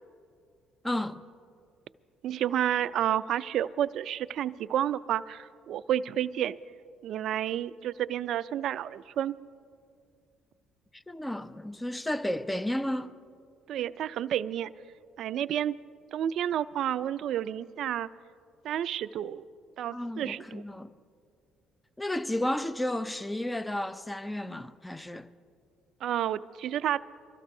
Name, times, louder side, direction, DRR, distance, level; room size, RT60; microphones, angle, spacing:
voice 1, 0.8-1.2 10.9-13.1 19.9-20.9 22.0-25.3, left 1 dB, 10° left, 0.5 m, -32 dB
voice 2, 2.2-6.6 7.0-9.4 13.7-14.7 15.2-15.8 16.1-18.1 18.6-19.4 19.8-20.6 26.0-27.0, right 11 dB, 65° right, 0.4 m, -30 dB
24.5 x 13.5 x 2.7 m
supercardioid pair, 70°, 0 cm